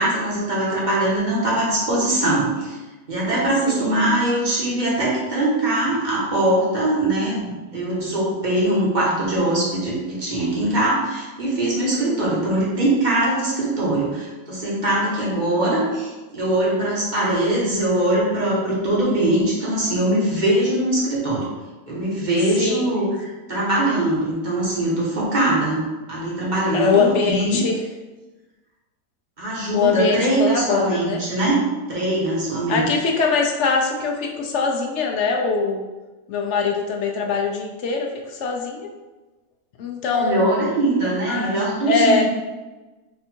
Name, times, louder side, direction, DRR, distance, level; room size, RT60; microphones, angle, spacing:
voice 1, 0.0-2.8 3.1-21.4 21.9-25.8 26.1-27.6 29.4-31.6 31.9-32.9 40.1-42.2, right 1 dB, 30° right, -6 dB, 1.2 m, -22 dB
voice 2, 12.0-12.4 22.6-23.0 26.7-27.8 29.7-31.2 32.7-35.8 36.3-38.9 39.8-40.5 41.3-41.6 41.9-42.2, left 5 dB, 60° left, 1 dB, 0.8 m, -22 dB
4.4 x 2.6 x 4.4 m, 1.2 s
omnidirectional pair, 1.6 m